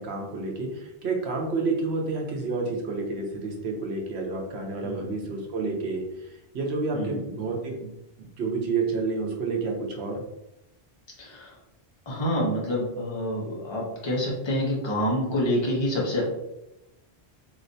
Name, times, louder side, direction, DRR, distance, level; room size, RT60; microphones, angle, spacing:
voice 1, 0.0-7.9 8.2-10.2, right 3 dB, 80° right, 1 dB, 1.0 m, -29 dB
voice 2, 11.2-11.6 12.1-16.2, equal, 30° left, -4 dB, 0.8 m, -27 dB
3.1 x 2.9 x 2.6 m, 0.90 s
omnidirectional pair, 1.1 m